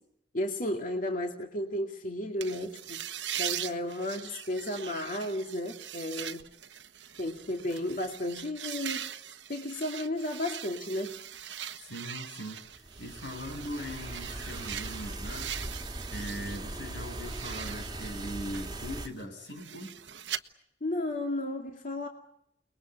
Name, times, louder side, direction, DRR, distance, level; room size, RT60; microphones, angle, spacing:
voice 1, 0.3-6.4 7.2-9.1 9.5-11.2 20.8-22.1, left 1 dB, 50° left, 3 dB, 2.3 m, -33 dB
sound 1, 2.4-16.6 16.9-20.4, right 10 dB, 80° right, 1.2 m, -41 dB
voice 2, 11.8-15.6 16.1-19.9, equal, 85° left, 5 dB, 7.2 m, -40 dB
sound 2, 12.7-19.1, right 1 dB, 25° right, 1.8 m, -40 dB
29.5 x 21.5 x 8.2 m, 0.77 s
head